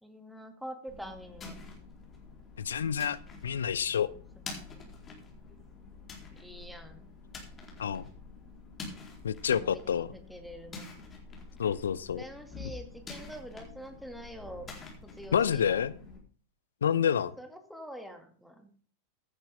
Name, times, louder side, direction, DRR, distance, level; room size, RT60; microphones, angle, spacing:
voice 1, 0.0-1.6 4.1-4.2 6.4-7.1 9.5-10.8 12.1-14.7 15.0-15.9 17.4-18.8, equal, ahead, 5 dB, 2.3 m, -45 dB
sound 1, 0.9-16.2, left 4 dB, 20° left, 4.2 m, -47 dB
voice 2, 2.6-4.1 7.8-8.0 9.2-10.1 11.6-12.2 15.3-15.9 16.8-17.3, left 8 dB, 65° left, 18 dB, 0.7 m, -28 dB
15.5 x 10.0 x 3.6 m, 0.43 s
figure-of-eight pair, 90°, 0 cm